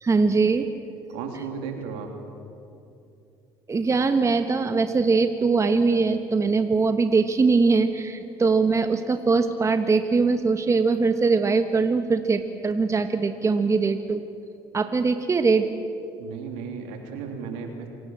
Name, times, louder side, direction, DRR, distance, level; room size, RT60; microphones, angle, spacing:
voice 1, 0.0-0.7 3.7-14.2 14.7-15.7, right 4 dB, 25° right, 8 dB, 1.4 m, -22 dB
voice 2, 1.1-2.1 16.2-17.9, right 6 dB, 80° right, 3 dB, 3.4 m, -34 dB
27.5 x 17.5 x 7.6 m, 2.7 s
hypercardioid pair, 70°, 11 cm